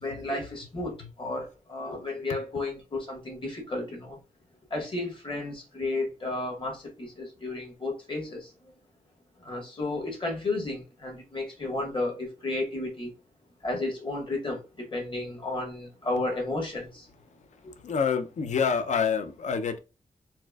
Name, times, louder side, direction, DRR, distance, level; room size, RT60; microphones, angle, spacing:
voice 1, 0.0-4.2 4.7-8.5 9.4-13.1 13.6-17.0 17.6-17.7, left 2 dB, 40° left, 1.3 m, -33 dB
voice 2, 17.8-19.8, left 6 dB, 60° left, 0.5 m, -27 dB
4.1 x 2.5 x 2.3 m
wide cardioid pair, 150°, 14 cm